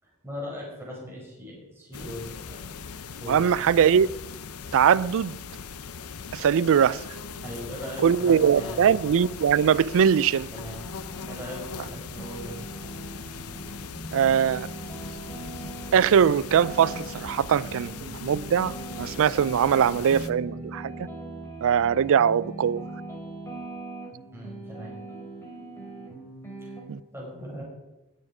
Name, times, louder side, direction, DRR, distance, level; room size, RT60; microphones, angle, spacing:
voice 1, 0.0-2.6 3.2-3.6 7.4-9.0 10.5-10.8 11.3-12.6 24.3-25.0 26.6-26.7 27.1-27.6, equal, 10° right, 5.5 m, -39 dB
sound 1, 1.9-20.3, left 5 dB, 75° left, 0.8 m, -39 dB
voice 2, 3.3-4.1 4.7-5.4 6.3-7.0 8.0-10.5 14.1-14.7 15.9-21.1 21.6-22.9 26.9-27.0, right 8 dB, 65° right, 0.4 m, -21 dB
sound 2, 10.8-11.4 11.8-26.8, right 2 dB, 10° left, 3.9 m, -40 dB
20.5 x 7.4 x 4.9 m
head